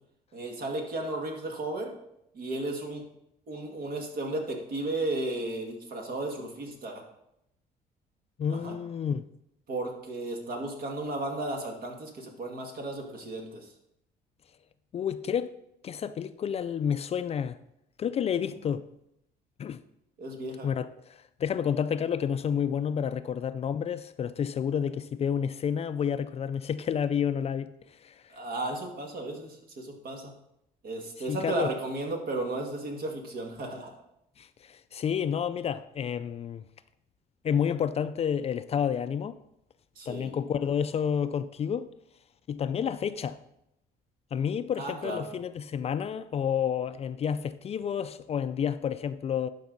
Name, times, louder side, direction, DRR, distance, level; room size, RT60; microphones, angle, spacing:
voice 1, 0.3-1.9 2.3-3.0 3.5-7.0 8.5-8.8 9.7-13.7 18.5-18.6 20.2-20.7 28.3-30.3 30.8-33.9 40.0-40.4 44.8-45.3, right 2 dB, 55° right, 2.0 m, -34 dB
voice 2, 8.4-9.2 14.9-15.6 15.8-17.6 18.0-18.8 19.6-19.8 20.6-20.9 21.4-27.7 28.0-28.1 31.3-31.7 34.4-36.6 37.4-39.4 40.1-41.9 42.5-43.4 44.3-49.5, left 8 dB, 40° left, 0.4 m, -30 dB
11.5 x 5.3 x 4.0 m
cardioid pair, 110°, 17 cm